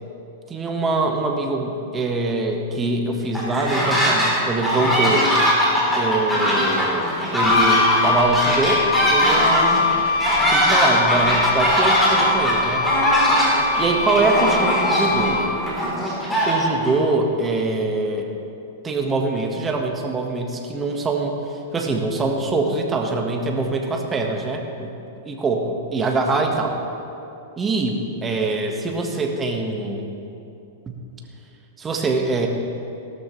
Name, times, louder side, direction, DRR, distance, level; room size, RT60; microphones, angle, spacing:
voice 1, 0.5-5.3 6.0-9.9 10.5-12.9 13.8-15.4 16.5-18.3 18.8-21.3 21.7-24.9 25.2-26.8 27.6-30.1 31.8-32.5, right 3 dB, 15° right, 2 dB, 1.5 m, -23 dB
sound 1, 3.3-4.3 4.6-16.9, equal, 5° left, 3.6 m, -20 dB
Wind instrument woodwind instrument, 7.4-15.8, left 4 dB, 60° left, 0.9 m, -23 dB
17.0 x 13.0 x 3.2 m, 2.7 s
hypercardioid pair, 140°, 0 cm